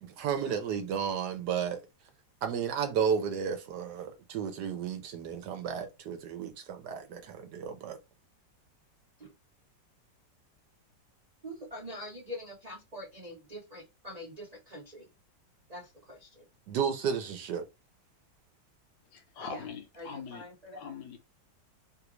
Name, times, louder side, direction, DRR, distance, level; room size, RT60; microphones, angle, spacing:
voice 1, 0.0-1.8 2.4-8.0 16.7-17.6, right 7 dB, 70° right, 1.1 m, -33 dB
voice 2, 11.4-15.1 15.7-16.5 19.5-19.6 20.0-20.9, left 1 dB, 55° right, 0.4 m, -44 dB
voice 3, 19.1-20.5 20.7-21.2, left 6 dB, 70° left, 1.3 m, -42 dB
3.3 x 2.4 x 3.0 m
omnidirectional pair, 2.0 m